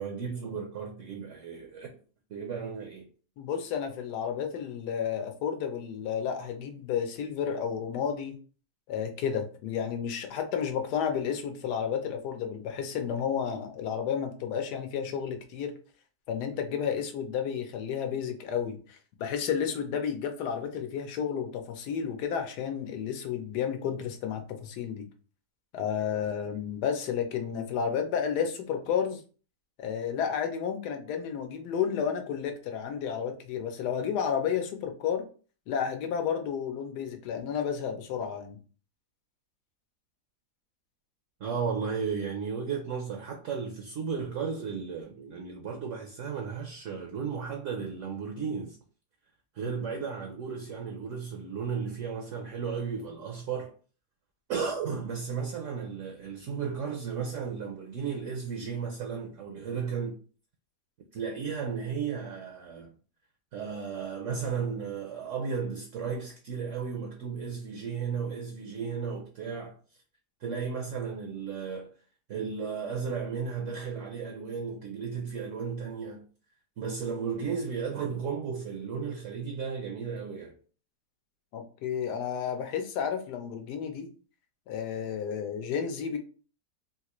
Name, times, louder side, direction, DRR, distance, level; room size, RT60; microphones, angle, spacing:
voice 1, 0.0-1.9 2.3-3.1 41.4-48.8 49.5-53.7 54.5-60.2 61.1-62.9 63.5-69.8 70.4-71.9 72.3-76.2 76.8-80.5, right 6 dB, 65° right, 0.8 m, -34 dB
voice 2, 3.4-8.4 8.9-15.7 16.3-25.1 25.7-29.2 29.8-35.2 35.7-38.6 49.6-49.7 81.5-84.1 84.7-86.2, left 7 dB, 80° left, 1.2 m, -31 dB
3.6 x 2.4 x 2.9 m
omnidirectional pair, 1.7 m